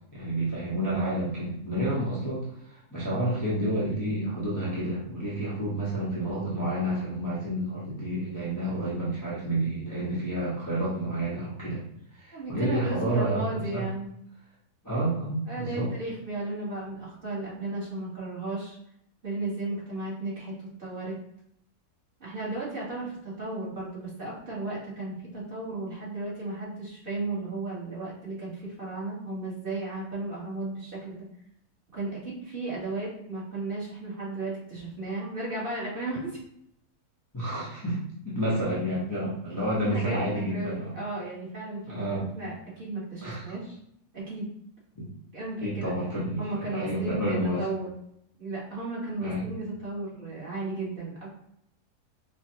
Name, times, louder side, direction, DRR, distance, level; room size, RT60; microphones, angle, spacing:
voice 1, 0.1-11.8 12.1-13.8 14.8-15.9 37.3-38.0 38.2-40.9 41.9-42.3 43.2-43.6 44.9-45.1 45.6-47.6 49.2-49.4, right 1 dB, 15° left, -8 dB, 0.6 m, -30 dB
voice 2, 12.3-14.1 15.5-18.8 19.2-21.2 22.2-31.3 31.9-36.4 39.8-42.1 42.3-43.8 44.1-44.4 45.3-45.9 46.4-47.9 48.4-51.3, right 2 dB, 40° right, -7 dB, 1.3 m, -35 dB
4.7 x 2.1 x 2.7 m, 0.73 s
omnidirectional pair, 1.7 m